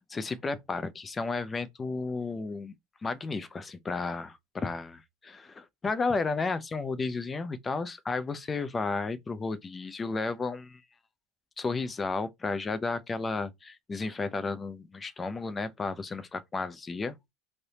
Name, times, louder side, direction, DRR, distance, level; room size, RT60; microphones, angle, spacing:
voice 1, 0.1-2.7 3.0-10.8 11.6-17.1, left 3 dB, 15° left, 0.4 m, -33 dB
3.2 x 2.6 x 2.8 m
supercardioid pair, 135°, 0 cm